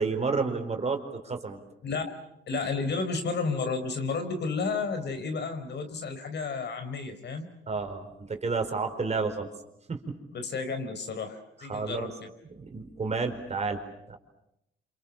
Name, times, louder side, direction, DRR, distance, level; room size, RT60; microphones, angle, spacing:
voice 1, 0.0-1.6 7.7-9.5 9.9-10.1 11.6-12.1 12.4-14.2, right 4 dB, 35° right, 5 dB, 4.8 m, -31 dB
voice 2, 2.5-7.5 10.3-12.1, left 4 dB, 60° left, 8 dB, 4.6 m, -32 dB
28.0 x 27.0 x 7.4 m, 0.82 s
cardioid pair, 90°, 20 cm